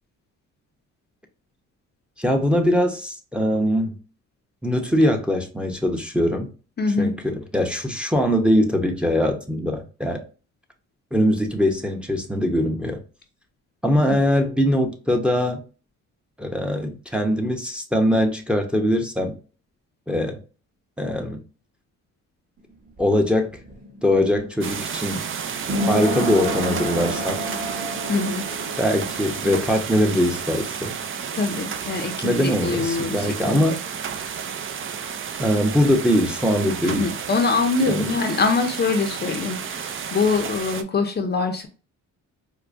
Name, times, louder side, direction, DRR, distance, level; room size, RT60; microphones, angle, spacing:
voice 1, 2.2-4.0 4.6-6.5 7.0-10.2 11.1-13.0 13.8-15.6 16.4-19.4 20.1-20.4 21.0-21.4 23.0-23.5 24.0-25.3 25.9-27.4 28.8-31.0 32.2-33.8 35.4-37.1 37.9-38.1, equal, 5° right, 0.7 m, -22 dB
voice 2, 6.8-7.1 14.1-14.2 27.8-28.4 31.3-33.6 36.8-41.7, left 4 dB, 35° left, 0.6 m, -24 dB
sound 1, 22.6-34.1 34.4-34.5, equal, 30° right, 1.0 m, -32 dB
sound 2, 24.6-40.8, right 7 dB, 45° right, 0.5 m, -31 dB
4.6 x 2.1 x 2.5 m
cardioid pair, 90°, 30 cm